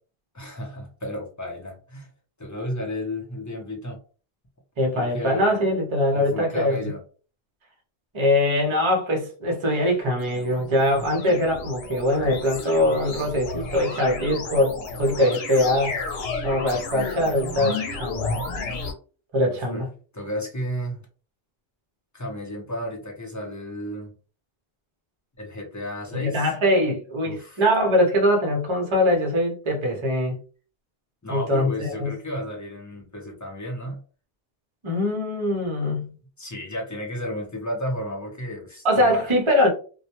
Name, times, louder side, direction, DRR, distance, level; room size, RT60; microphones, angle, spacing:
voice 1, 0.3-2.1 2.4-4.0 4.9-5.6 6.1-7.0 19.4-19.8 20.1-21.0 22.1-24.2 25.4-26.5 27.2-27.6 31.2-34.0 36.4-39.3, equal, 20° left, 0.6 m, -33 dB
voice 2, 4.8-6.8 8.1-16.0 16.4-18.3 19.3-19.9 26.1-30.4 31.3-32.1 34.8-36.2 38.8-39.7, left 1 dB, 35° right, 0.7 m, -22 dB
sound 1, 9.9-18.9, left 4 dB, 90° left, 0.9 m, -32 dB
2.2 x 2.1 x 2.8 m
omnidirectional pair, 1.0 m